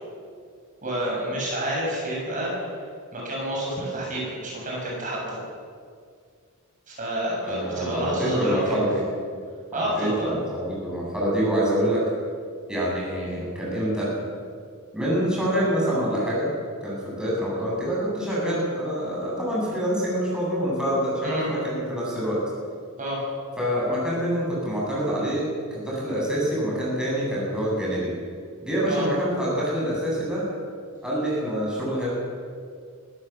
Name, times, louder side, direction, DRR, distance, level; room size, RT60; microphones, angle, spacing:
voice 1, 0.8-2.7 3.1-5.4 6.9-8.8 9.7-10.5 21.2-21.5 23.0-23.2 28.9-29.1, right 1 dB, 35° right, -4 dB, 7.2 m, -29 dB
voice 2, 7.4-9.0 9.7-12.0 12.7-14.1 14.9-16.5 16.8-22.4 23.6-25.5 25.7-28.1 28.6-30.5 31.0-32.1, equal, 5° right, -6 dB, 7.6 m, -26 dB
24.5 x 14.5 x 7.4 m, 2.1 s
head